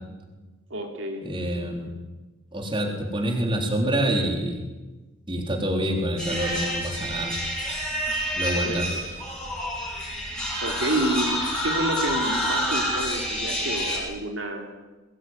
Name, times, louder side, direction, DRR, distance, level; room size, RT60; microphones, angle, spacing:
voice 1, 0.7-1.2 8.6-9.0 10.6-14.7, right 1 dB, 60° right, 3 dB, 3.2 m, -29 dB
voice 2, 1.2-1.9 2.5-4.6 5.3-7.3 8.4-9.0, right 1 dB, 25° right, 3 dB, 3.9 m, -26 dB
sound 1, 6.2-14.0, equal, 5° left, 7.1 m, -28 dB
23.0 x 19.5 x 9.6 m, 1.2 s
head